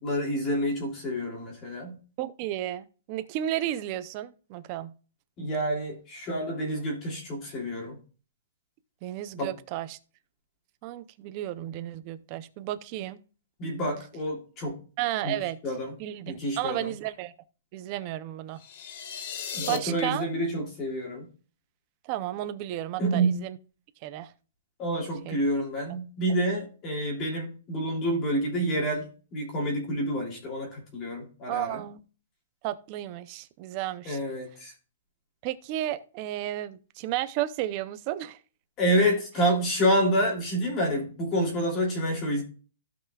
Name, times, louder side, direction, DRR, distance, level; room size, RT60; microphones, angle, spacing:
voice 1, 0.0-2.0 5.4-8.0 9.4-9.5 13.6-14.8 15.2-15.4 15.6-15.9 16.3-16.9 19.5-21.3 23.0-23.4 24.8-31.8 34.0-34.7 38.8-42.4, equal, 15° left, 2.8 m, -28 dB
voice 2, 2.2-4.9 9.0-10.0 10.8-13.2 15.0-15.6 16.0-17.3 17.7-18.6 19.4-20.3 22.0-23.6 24.0-24.3 25.2-25.4 25.9-26.0 31.5-32.0 32.6-34.2 35.4-38.4 39.4-39.5, right 14 dB, 25° right, 0.5 m, -33 dB
sound 1, 18.6-19.8, left 8 dB, 35° left, 1.1 m, -36 dB
16.0 x 5.6 x 2.3 m
hypercardioid pair, 180°, 0 cm